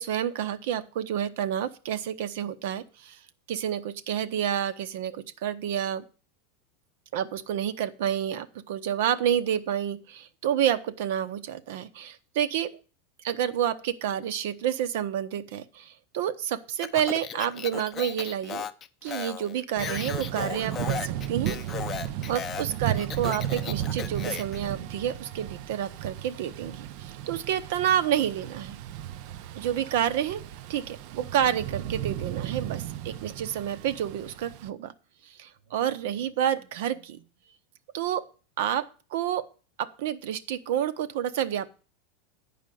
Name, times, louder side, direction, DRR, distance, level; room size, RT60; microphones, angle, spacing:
voice 1, 0.0-3.2 3.5-6.0 7.1-12.7 13.2-18.7 19.0-21.6 22.3-28.8 29.5-30.4 30.7-34.9 35.2-37.2 37.9-38.2 38.6-39.4 39.8-41.7, right 10 dB, 65° right, 12 dB, 0.9 m, -29 dB
Speech, 16.8-24.6, left 8 dB, 20° left, 0.5 m, -36 dB
Thunder / Rain, 19.8-34.7, right 11 dB, 50° right, 0.5 m, -35 dB
10.5 x 5.1 x 7.7 m, 0.36 s
supercardioid pair, 165°, 0 cm